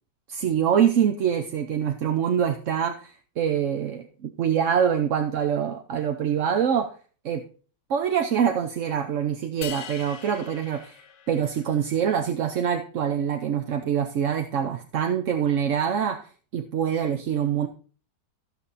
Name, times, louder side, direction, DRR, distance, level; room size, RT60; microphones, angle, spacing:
voice 1, 0.3-6.9 7.2-7.4 7.9-11.0 11.3-17.7, right 8 dB, 55° right, 6 dB, 1.0 m, -25 dB
sound 1, 9.6-11.9, left 8 dB, 80° left, 1.6 m, -41 dB
14.5 x 6.4 x 4.1 m, 0.40 s
omnidirectional pair, 1.8 m